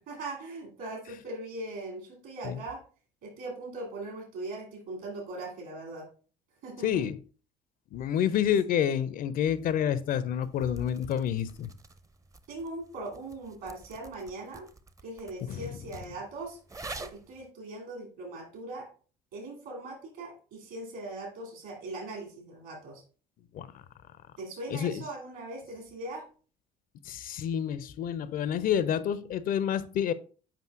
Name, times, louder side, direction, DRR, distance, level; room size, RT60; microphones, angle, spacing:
voice 1, 0.1-2.8 3.2-6.1 6.6-7.0 12.5-14.6 15.0-16.6 17.0-18.9 19.3-23.0 24.4-26.3, right 2 dB, 65° right, 2.6 m, -40 dB
voice 2, 6.8-7.2 7.9-11.7 15.5-15.6 23.5-23.8 24.7-25.0 27.0-30.1, left 9 dB, 40° left, 0.4 m, -28 dB
sound 1, 9.3-17.5, right 3 dB, 15° right, 0.5 m, -48 dB
7.4 x 5.2 x 2.4 m
figure-of-eight pair, 50°, 21 cm